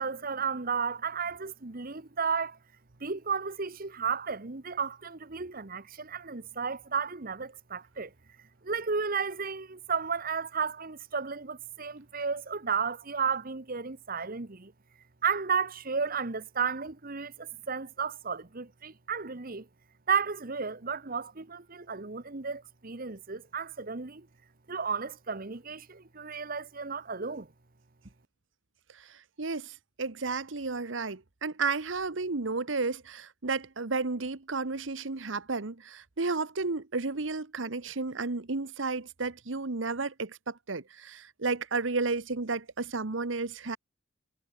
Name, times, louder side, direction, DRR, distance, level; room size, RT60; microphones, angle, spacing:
voice 1, 0.0-2.6 3.0-8.1 8.6-14.7 15.2-19.7 20.1-24.3 24.7-27.5, right 5 dB, 45° right, 1.3 m, -33 dB
voice 2, 28.9-43.8, right 3 dB, 70° right, 1.2 m, -32 dB
head